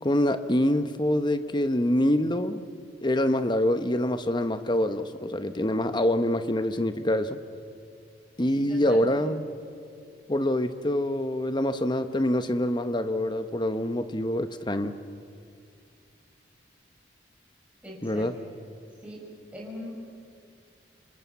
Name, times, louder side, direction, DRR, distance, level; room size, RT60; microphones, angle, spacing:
voice 1, 0.0-2.6 3.0-7.4 8.4-9.5 10.3-14.9 18.0-18.3, left 1 dB, 25° left, 9 dB, 1.1 m, -25 dB
voice 2, 8.5-9.0 17.8-18.3 19.0-19.2 19.5-19.9, left 1 dB, 5° right, -4 dB, 5.6 m, -40 dB
29.5 x 26.5 x 7.0 m, 2.3 s
head